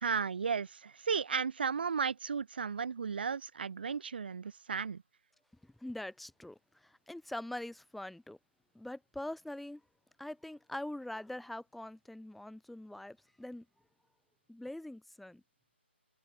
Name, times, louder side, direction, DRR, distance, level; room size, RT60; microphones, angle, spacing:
voice 1, 0.0-5.0, right 6 dB, 55° right, 3.5 m, -34 dB
voice 2, 5.6-8.4 8.7-9.8 10.2-13.6 14.5-15.4, left 1 dB, ahead, 1.7 m, -43 dB
figure-of-eight pair, 140°, 6 cm